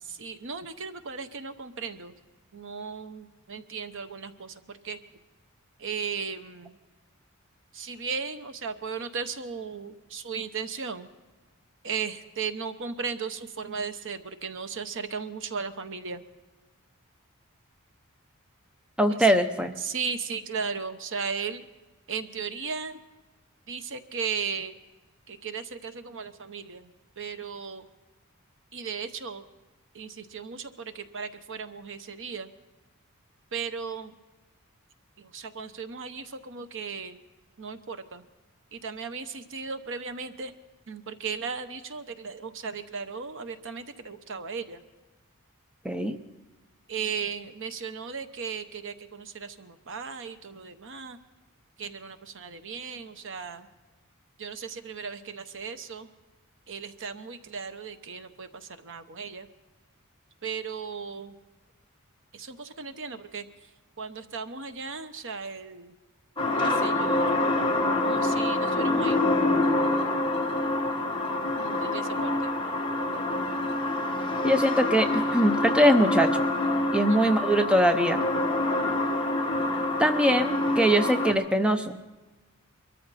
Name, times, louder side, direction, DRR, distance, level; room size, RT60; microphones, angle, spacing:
voice 1, 0.0-2.2 2.5-5.0 5.8-6.8 7.7-11.1 11.8-16.2 19.1-19.3 19.8-21.7 22.1-23.0 23.7-24.7 25.3-26.9 27.2-27.9 28.7-29.4 29.9-32.5 33.5-34.1 35.2-37.2 37.6-38.2 38.7-40.5 40.9-44.8 46.9-51.2 51.8-53.7 54.4-56.1 56.7-59.5 60.4-61.3 62.3-63.5 64.0-65.9 66.5-67.4 68.0-69.2 71.6-72.5 77.0-77.3, right 5 dB, 60° right, 10 dB, 1.0 m, -36 dB
voice 2, 19.0-19.7 45.8-46.2 74.4-76.4 76.9-78.2 80.0-82.0, equal, 5° right, 7 dB, 0.7 m, -22 dB
sound 1, 66.4-81.3, left 2 dB, 20° left, 1.5 m, -26 dB
23.0 x 13.5 x 4.2 m, 1.2 s
head